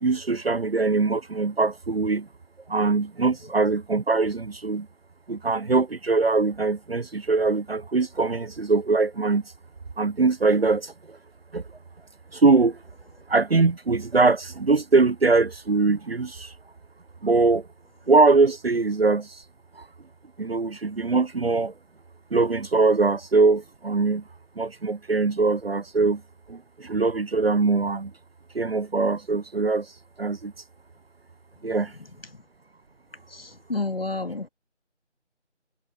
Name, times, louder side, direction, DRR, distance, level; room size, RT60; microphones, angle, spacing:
voice 1, 0.0-2.3 2.7-4.9 5.3-9.4 10.0-11.2 11.5-11.6 12.3-12.8 13.3-16.5 17.2-17.7 18.1-19.4 19.8-19.9 20.4-21.7 22.3-24.2 24.6-26.2 26.5-28.1 28.5-29.9 30.2-30.5 31.6-31.9, right 3 dB, 55° right, 0.5 m, -22 dB
voice 2, 33.3-34.5, left 3 dB, 55° left, 2.1 m, -30 dB
figure-of-eight pair, 170°, 35 cm